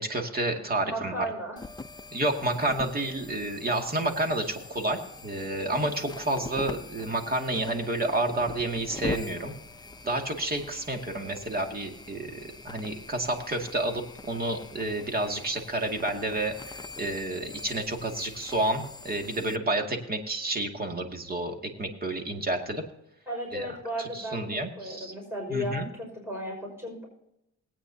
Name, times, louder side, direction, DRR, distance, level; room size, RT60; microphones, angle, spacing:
voice 1, 0.0-1.3 2.1-9.5 10.0-22.8 23.5-23.7 24.0-25.1 25.5-25.9, right 2 dB, 30° right, 3 dB, 2.3 m, -30 dB
voice 2, 0.8-1.6 23.3-27.1, equal, 10° right, -1 dB, 5.5 m, -35 dB
sound 1, 1.6-19.6, left 3 dB, 15° left, 0.7 m, -43 dB
20.0 x 9.0 x 2.8 m, 0.81 s
cardioid pair, 90°, 30 cm